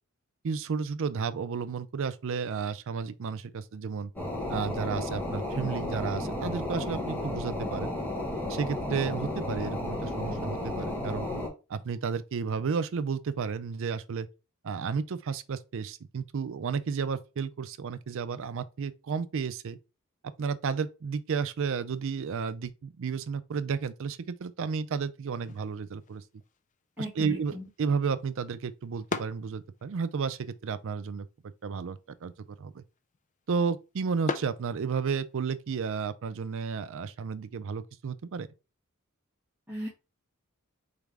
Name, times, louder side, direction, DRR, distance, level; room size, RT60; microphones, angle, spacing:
voice 1, 0.4-4.1 4.5-8.0 8.5-11.3 11.7-14.3 14.6-19.8 20.4-26.2 27.0-27.5 27.8-31.3 31.6-32.3 32.6-32.8 33.5-38.5, right 5 dB, 65° right, 0.4 m, -32 dB
sound 1, 4.2-11.5, left 1 dB, 10° left, 1.2 m, -33 dB
sound 2, 25.3-35.4, left 4 dB, 35° left, 0.4 m, -43 dB
voice 2, 27.0-27.7 39.7-39.9, equal, 5° right, 1.8 m, -37 dB
4.1 x 3.6 x 3.4 m
head